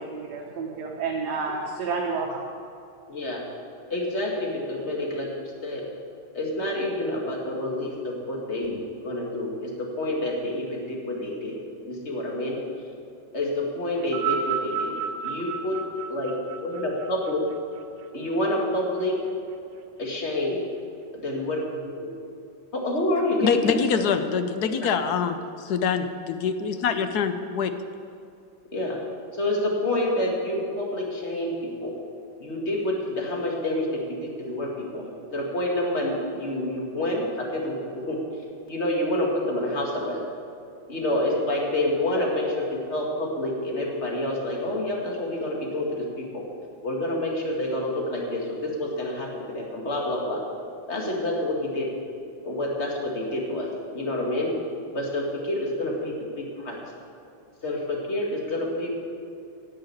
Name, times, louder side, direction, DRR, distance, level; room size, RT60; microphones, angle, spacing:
voice 1, 0.0-2.4, right 4 dB, 60° right, -1 dB, 1.6 m, -30 dB
voice 2, 3.1-3.4 3.9-5.3 5.6-5.8 6.4-8.8 9.0-9.7 10.0-11.5 11.8-12.6 13.3-14.9 15.2-15.8 16.1-16.3 16.6-17.4 18.1-19.1 20.0-20.6 21.1-22.1 22.7-23.9 24.6-24.8 28.7-29.0 29.4-31.5 31.8-31.9 32.4-33.9 34.4-38.2 38.7-40.2 40.9-42.6 42.9-46.0 46.3-46.4 46.8-50.4 50.9-51.9 52.4-54.5 54.9-56.8 57.6-59.0, left 1 dB, 35° left, -1 dB, 2.2 m, -28 dB
sound 1, 14.0-18.5 19.4-19.5, right 7 dB, 85° right, 1.5 m, -32 dB
voice 3, 23.4-27.7, left 6 dB, 65° left, 9 dB, 1.1 m, -25 dB
11.0 x 7.8 x 8.6 m, 2.4 s
omnidirectional pair, 2.0 m